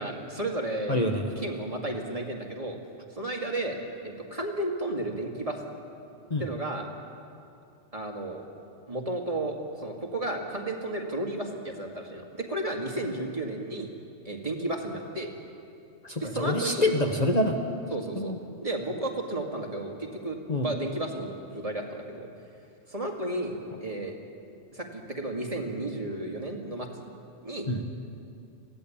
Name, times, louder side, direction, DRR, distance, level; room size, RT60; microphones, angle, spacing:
voice 1, 0.0-1.0 1.4-2.8 3.1-5.7 6.4-6.9 7.9-8.4 8.9-13.9 14.2-15.3 16.1-16.9 17.9-18.3 18.6-22.3 22.9-23.6 23.8-24.1 24.7-26.9 27.4-27.7, right 1 dB, 30° right, 1 dB, 2.2 m, -33 dB
voice 2, 0.9-1.4 6.3-6.4 16.0-17.6 18.2-18.4 20.5-20.7 27.7-27.8, left 1 dB, 35° left, 2 dB, 1.3 m, -26 dB
22.0 x 16.0 x 8.7 m, 2.5 s
omnidirectional pair, 1.3 m